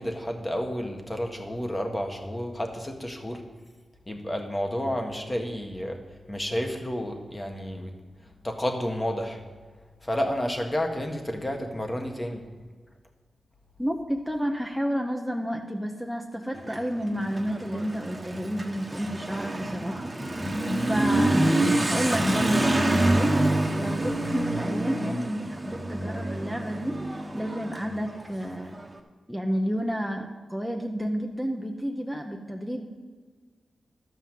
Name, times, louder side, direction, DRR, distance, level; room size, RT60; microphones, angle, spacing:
voice 1, 0.0-3.4 4.1-6.0 6.3-7.9 8.4-9.4 10.0-12.4, equal, 20° left, 3 dB, 1.6 m, -30 dB
voice 2, 13.8-28.8 29.3-32.8, equal, ahead, 1 dB, 0.9 m, -31 dB
Motorcycle / Accelerating revving vroom, 16.5-28.9, right 1 dB, 20° right, 1.2 m, -27 dB
12.5 x 5.6 x 7.6 m, 1.5 s
cardioid pair, 75°, 0 cm